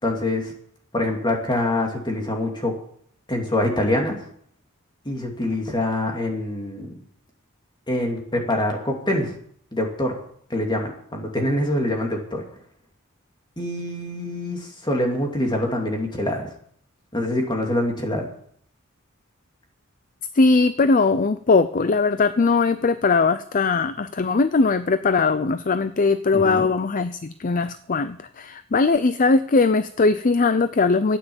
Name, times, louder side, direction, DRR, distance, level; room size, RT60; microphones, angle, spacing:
voice 1, 0.0-0.5 0.9-2.7 3.3-4.2 5.0-6.9 7.9-9.3 9.7-10.2 10.5-12.4 13.6-16.5 17.1-18.3 26.3-26.7, left 1 dB, 20° left, 1 dB, 2.8 m, -25 dB
voice 2, 20.3-31.2, left 4 dB, 40° left, 12 dB, 0.5 m, -20 dB
13.0 x 9.4 x 7.2 m, 0.63 s
head